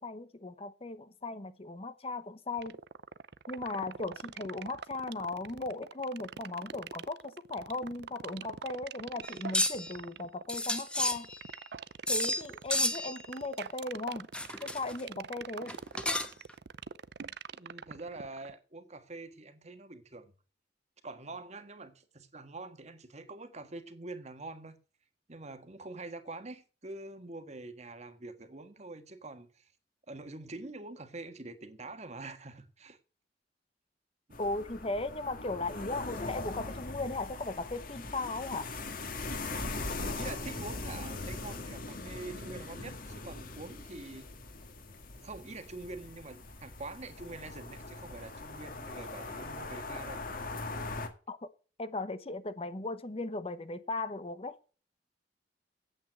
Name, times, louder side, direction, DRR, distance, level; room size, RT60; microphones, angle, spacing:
voice 1, 0.0-2.8 3.5-11.3 12.1-14.3 14.6-15.8 34.4-38.7 51.3-51.5 51.8-54.6, left 2 dB, 35° left, 0.9 m, -37 dB
sound 1, 2.6-18.5, right 6 dB, 65° right, 0.5 m, -43 dB
sound 2, 9.2-9.9 10.5-11.6 12.1-12.4 12.7-13.2 14.3-15.0 15.7-16.5, left 1 dB, 5° left, 1.2 m, -31 dB
voice 2, 17.5-20.3 21.0-24.8 25.3-29.7 30.1-33.0 40.0-44.3 45.2-50.2, right 2 dB, 40° right, 1.5 m, -45 dB
sound 3, 34.3-51.1, left 3 dB, 50° left, 2.0 m, -41 dB
9.0 x 8.6 x 7.6 m
head